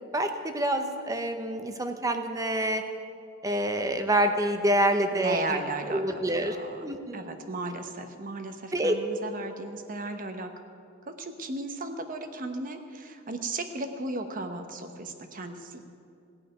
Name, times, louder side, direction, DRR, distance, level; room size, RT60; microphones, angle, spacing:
voice 1, 0.1-2.8 3.4-5.6 5.9-6.6 6.8-7.3 8.7-9.0, right 1 dB, 15° right, 6 dB, 0.8 m, -27 dB
voice 2, 5.2-10.5 11.0-15.8, right 2 dB, 45° right, 6 dB, 1.0 m, -35 dB
17.0 x 5.8 x 9.0 m, 2.5 s
head